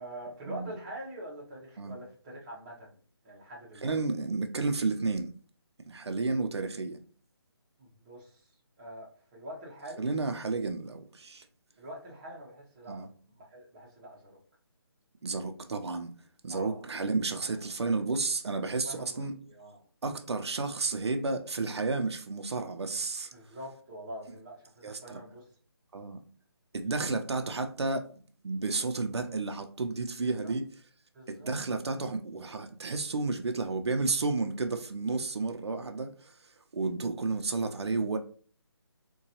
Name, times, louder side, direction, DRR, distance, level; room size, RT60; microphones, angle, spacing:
voice 1, 0.0-3.0 3.2-3.9 7.8-8.5 8.8-10.1 11.8-14.3 16.5-16.8 17.4-17.9 18.8-19.8 23.3-25.5 30.2-30.5 31.1-31.5, right 1 dB, 15° right, 0.7 m, -45 dB
voice 2, 3.8-5.3 5.9-7.0 10.0-11.4 12.9-13.0 15.2-16.1 16.4-19.3 20.0-23.3 24.8-25.2 25.9-26.2 26.7-28.1 28.4-30.6 31.3-36.3 36.7-38.2, right 3 dB, 80° right, 0.5 m, -31 dB
3.8 x 2.2 x 2.8 m
figure-of-eight pair, 160°, 14 cm